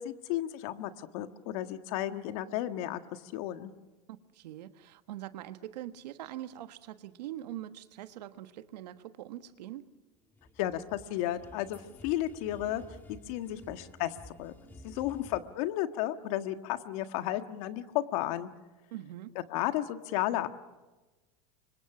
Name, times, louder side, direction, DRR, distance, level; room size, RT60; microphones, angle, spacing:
voice 1, 0.0-3.7 10.6-12.8 13.1-14.5 14.8-18.5 19.5-20.5, left 13 dB, 60° left, 1.6 m, -33 dB
voice 2, 4.1-9.9 18.9-19.4, right 13 dB, 90° right, 1.4 m, -43 dB
sound 1, 10.2-15.4, left 1 dB, 10° left, 2.2 m, -52 dB
29.0 x 25.5 x 6.2 m
supercardioid pair, 145°, 20 cm